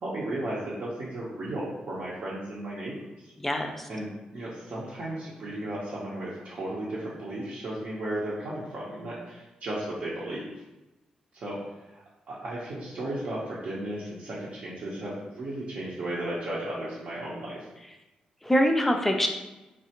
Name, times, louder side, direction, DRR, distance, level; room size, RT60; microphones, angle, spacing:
voice 1, 0.0-3.3 3.9-10.5 11.3-11.6 11.9-12.0 12.3-17.6, right 1 dB, 65° right, -8 dB, 0.7 m, -35 dB
voice 2, 3.4-3.9 18.4-19.3, equal, 10° left, 3 dB, 0.4 m, -24 dB
3.2 x 2.4 x 2.8 m, 1.1 s
cardioid pair, 105°, 3 cm